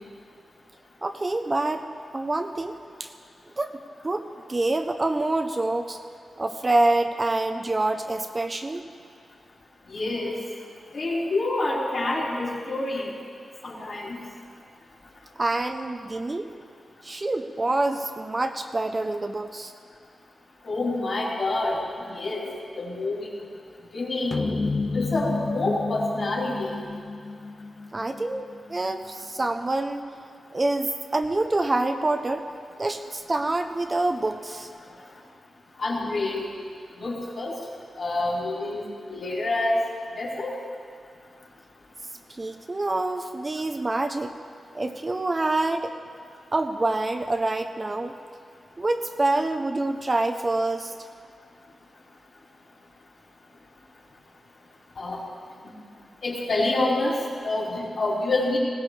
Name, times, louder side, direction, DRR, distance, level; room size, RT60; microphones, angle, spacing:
voice 1, 1.0-1.8 2.1-3.1 3.6-6.0 6.4-8.8 15.4-16.5 17.0-19.7 27.9-30.0 30.5-32.5 32.8-34.7 42.3-44.4 44.7-46.0 46.5-48.2 48.8-50.9, right 2 dB, 25° right, 6 dB, 0.6 m, -26 dB
voice 2, 9.9-10.4 10.9-13.1 13.6-14.2 20.6-22.5 22.8-23.3 23.9-24.5 24.9-26.8 35.8-36.4 37.0-37.6 38.0-39.8 40.2-40.5 55.0-55.2 56.2-58.6, left 2 dB, 50° left, -7 dB, 3.9 m, -27 dB
sound 1, 24.3-28.9, left 3 dB, 35° left, 0.4 m, -30 dB
19.5 x 17.5 x 3.2 m, 2.2 s
wide cardioid pair, 140°, 0 cm